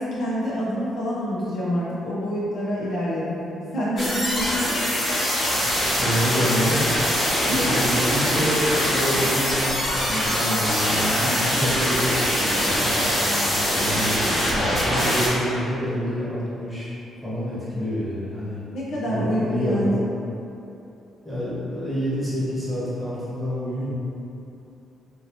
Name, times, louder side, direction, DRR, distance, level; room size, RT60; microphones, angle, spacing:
voice 1, 0.0-3.4 3.7-4.7 7.5-7.9 18.7-20.0, equal, 70° left, -8 dB, 0.8 m, -26 dB
sound 1, 4.0-15.3, equal, 40° left, 1.1 m, -23 dB
voice 2, 6.0-7.0 7.5-14.2 14.8-16.9 17.2-18.6 19.0-19.8 21.2-23.9, equal, 5° right, -11 dB, 1.3 m, -27 dB
2.9 x 2.7 x 3.0 m, 2.9 s
cardioid pair, 90°, 0 cm